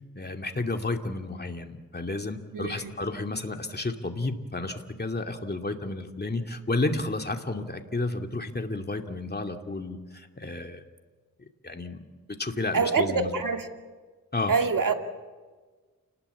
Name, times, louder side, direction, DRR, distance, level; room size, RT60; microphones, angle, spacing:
voice 1, 0.1-10.8 11.6-12.0 12.4-13.3 14.3-14.5, left 2 dB, 30° left, 2.5 m, -31 dB
voice 2, 2.5-2.9 12.7-13.7 14.5-14.9, right 5 dB, 65° right, 2.4 m, -25 dB
29.0 x 19.5 x 8.4 m
wide cardioid pair, 75°, 35 cm